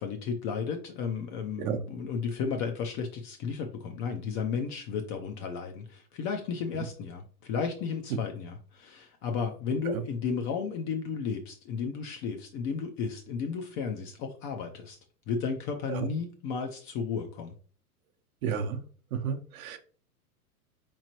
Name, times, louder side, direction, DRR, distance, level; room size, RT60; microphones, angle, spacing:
voice 1, 0.0-15.0 15.3-17.5, left 6 dB, 30° left, 4 dB, 0.4 m, -33 dB
voice 2, 18.4-18.8 19.1-19.8, right 7 dB, 65° right, 6 dB, 0.8 m, -32 dB
3.9 x 3.0 x 2.9 m, 0.42 s
hypercardioid pair, 110°, 45 cm